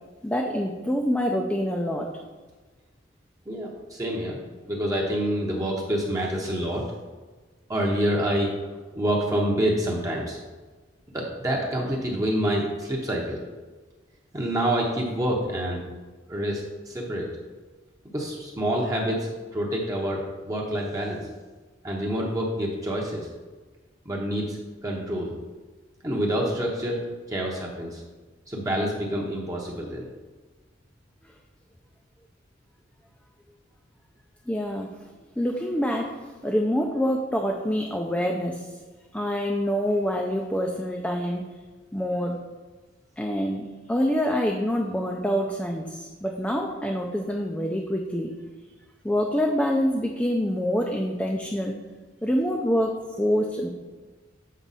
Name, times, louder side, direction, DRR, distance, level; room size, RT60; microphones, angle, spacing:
voice 1, 0.2-2.1 34.5-34.9 35.4-36.2 36.4-38.7 39.1-41.4 41.9-42.4 43.2-48.3 49.0-51.8 52.2-53.7, equal, 5° left, 1 dB, 0.4 m, -26 dB
voice 2, 3.5-4.4 4.7-6.8 7.7-8.5 8.9-10.4 11.1-13.4 14.3-15.9 16.3-17.3 18.1-21.2 21.8-23.3 24.1-24.6 24.8-25.3 26.0-27.0 27.3-28.0 28.5-30.1, equal, 20° right, -2 dB, 0.8 m, -27 dB
7.4 x 4.5 x 4.0 m, 1.3 s
head